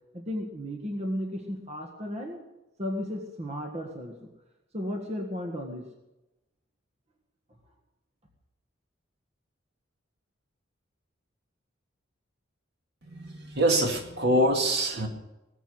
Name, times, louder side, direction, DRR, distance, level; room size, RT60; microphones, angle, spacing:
voice 1, 0.1-2.4 2.8-4.3 4.7-5.9, equal, 35° right, 2 dB, 1.7 m, -34 dB
voice 2, 13.5-15.1, right 1 dB, 60° right, 3 dB, 2.4 m, -24 dB
20.0 x 8.0 x 8.0 m, 0.95 s
head